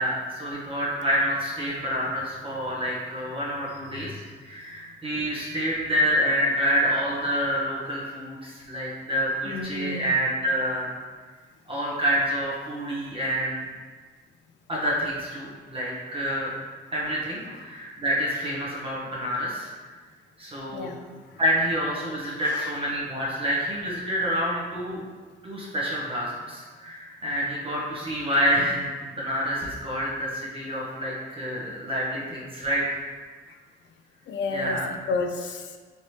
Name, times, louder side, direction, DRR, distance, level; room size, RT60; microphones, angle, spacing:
voice 1, 0.0-10.9 11.7-13.6 14.7-16.5 16.9-19.7 20.4-20.9 21.4-25.0 25.4-33.0 34.5-34.9, equal, 25° right, -5 dB, 0.8 m, -27 dB
voice 2, 9.4-10.1 17.5-17.6 20.7-21.2 22.4-22.8 34.3-34.8 35.1-35.8, left 3 dB, 65° left, 5 dB, 0.4 m, -31 dB
3.2 x 2.9 x 2.7 m, 1.5 s
cardioid pair, 90°, 20 cm